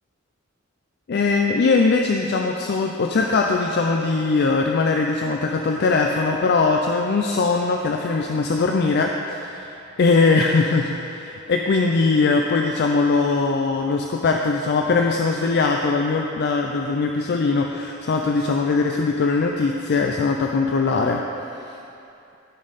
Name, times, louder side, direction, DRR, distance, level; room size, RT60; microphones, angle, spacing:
voice 1, 1.1-21.2, left 4 dB, 50° left, 2 dB, 0.4 m, -21 dB
12.5 x 5.4 x 4.0 m, 2.7 s
head